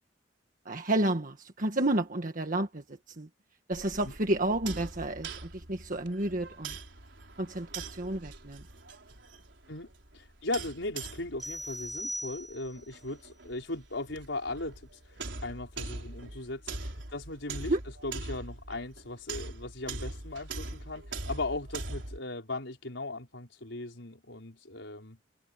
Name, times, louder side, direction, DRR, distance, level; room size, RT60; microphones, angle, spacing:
voice 1, 0.6-3.3 3.7-6.7 7.4-8.6 17.7-17.8, right 1 dB, 45° right, 1.6 m, -31 dB
sound 1, 3.7-22.2, right 3 dB, 75° right, 4.6 m, -42 dB
voice 2, 10.1-17.7 18.0-25.2, left 2 dB, 90° left, 4.7 m, -38 dB
sound 2, 11.4-12.9, equal, ahead, 2.0 m, -39 dB
head